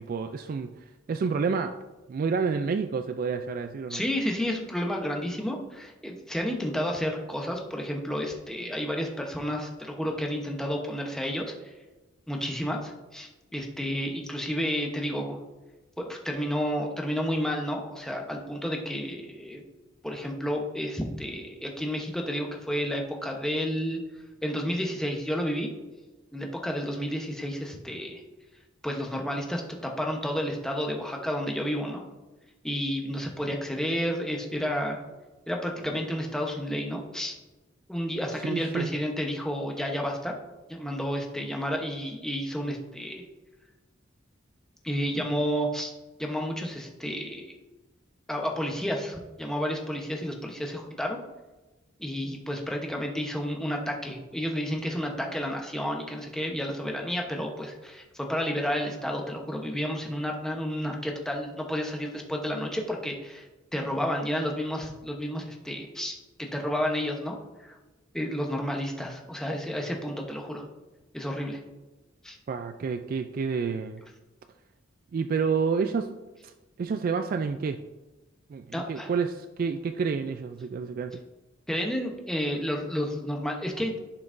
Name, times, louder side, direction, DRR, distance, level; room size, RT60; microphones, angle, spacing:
voice 1, 0.0-1.8 2.1-4.0 38.3-38.9 72.5-74.0 75.1-76.1 76.4-77.8 78.5-81.2, right 5 dB, 50° right, 9 dB, 0.3 m, -29 dB
voice 2, 3.9-11.5 12.3-15.4 16.0-19.6 20.0-24.0 24.4-25.7 26.3-28.2 28.8-32.0 32.6-35.0 35.5-37.4 37.9-40.3 40.7-43.2 44.8-45.9 46.2-47.5 48.3-51.2 52.0-67.8 68.1-70.6 71.1-71.6 72.2-72.4 78.7-79.1 81.7-84.0, equal, 5° left, 1 dB, 0.9 m, -31 dB
10.5 x 5.8 x 2.6 m, 1.1 s
head